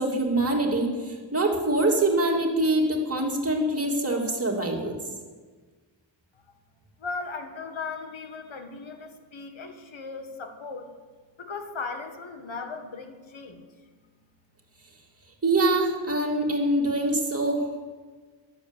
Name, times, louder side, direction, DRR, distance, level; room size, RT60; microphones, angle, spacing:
voice 1, 0.0-5.0 15.4-17.7, right 2 dB, 30° right, 0 dB, 2.9 m, -24 dB
voice 2, 7.0-10.9 11.4-13.6, left 4 dB, 80° left, 6 dB, 1.8 m, -37 dB
14.5 x 12.0 x 8.3 m, 1.4 s
wide cardioid pair, 155°, 46 cm